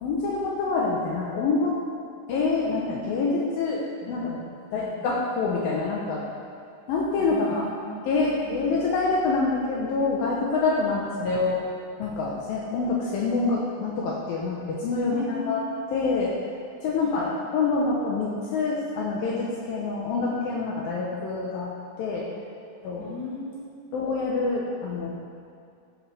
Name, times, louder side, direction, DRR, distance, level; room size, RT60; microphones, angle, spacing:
voice 1, 0.0-1.7 2.3-3.8 4.1-4.4 4.7-6.2 6.9-7.6 8.1-11.6 12.0-15.6 15.9-16.3 16.8-21.7 22.0-22.2 22.8-23.1 23.9-25.1, left 3 dB, 80° left, -4 dB, 2.6 m, -26 dB
voice 2, 4.7-5.1 7.2-8.8 11.1-11.4 15.1-16.3 17.0-17.3 23.0-23.8, left 2 dB, 60° left, -8 dB, 1.0 m, -38 dB
14.0 x 7.8 x 3.3 m, 2.4 s
omnidirectional pair, 4.2 m